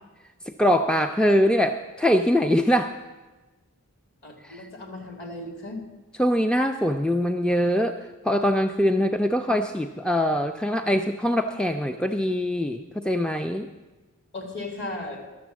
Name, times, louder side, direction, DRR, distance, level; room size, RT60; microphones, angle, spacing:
voice 1, 0.6-2.9 4.5-4.6 6.2-8.0 8.2-13.7, equal, 5° left, 7 dB, 0.3 m, -23 dB
voice 2, 4.2-5.8 14.3-15.2, left 2 dB, 50° left, 2 dB, 2.2 m, -36 dB
12.0 x 6.9 x 7.3 m, 1.2 s
head